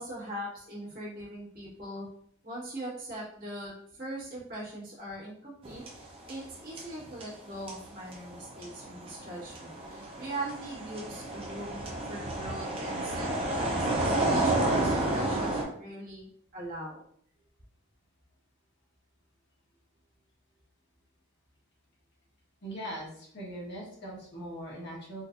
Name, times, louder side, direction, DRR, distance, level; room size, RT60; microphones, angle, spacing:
voice 1, 0.0-2.1 2.4-5.8 6.3-17.0, right 1 dB, 45° right, -7 dB, 1.4 m, -41 dB
sound 1, 5.6-6.5 6.8-15.6, right 2 dB, 25° right, 0.6 m, -31 dB
voice 2, 22.6-25.2, right 1 dB, 55° left, -4 dB, 1.2 m, -40 dB
4.0 x 2.5 x 2.4 m, 0.65 s
head